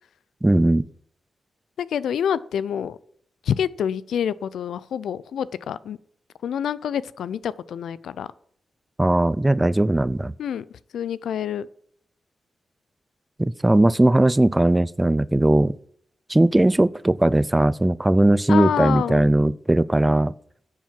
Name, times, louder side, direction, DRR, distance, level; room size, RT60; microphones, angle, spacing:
voice 1, 0.4-0.8 9.0-10.3 13.4-15.7 16.3-20.3, right 1 dB, 15° right, 19 dB, 0.4 m, -18 dB
voice 2, 1.8-3.0 3.4-6.0 6.4-8.3 10.4-10.6 10.9-11.7 18.5-19.3, left 8 dB, 85° left, 18 dB, 0.3 m, -27 dB
10.0 x 4.6 x 7.4 m, 0.62 s
cardioid pair, 50°, 0 cm